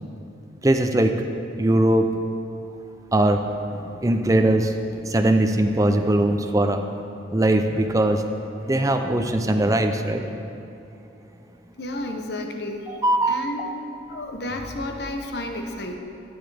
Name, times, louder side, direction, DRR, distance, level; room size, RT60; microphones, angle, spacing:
voice 1, 0.6-1.1 1.6-2.1 3.1-3.4 3.7-6.9 7.3-10.3 12.9-13.7, right 1 dB, 15° right, 6 dB, 0.4 m, -21 dB
voice 2, 11.8-12.8 13.3-13.7 14.1-16.0, left 1 dB, 55° left, 4 dB, 0.9 m, -31 dB
13.5 x 9.7 x 3.4 m, 2.7 s
head